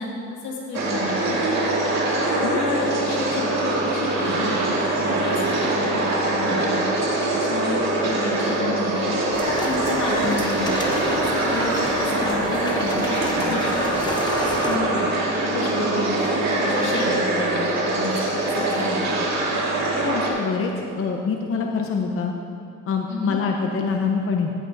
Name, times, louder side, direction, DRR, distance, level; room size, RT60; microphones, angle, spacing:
voice 1, 0.0-1.6 2.3-3.4 3.8-4.5 5.0-10.8 11.2-13.9 14.4-15.1 15.4-19.5 23.1-23.4, left 2 dB, 85° left, -3 dB, 2.2 m, -31 dB
sound 1, 0.7-20.3, right 2 dB, 60° right, 2.1 m, -23 dB
sound 2, 9.3-14.8, left 1 dB, 15° left, 0.9 m, -31 dB
voice 2, 20.0-20.7 21.0-22.3 22.9-24.5, left 5 dB, 45° left, 2 dB, 0.8 m, -25 dB
15.0 x 8.7 x 2.6 m, 2.5 s
cardioid pair, 90°, 30 cm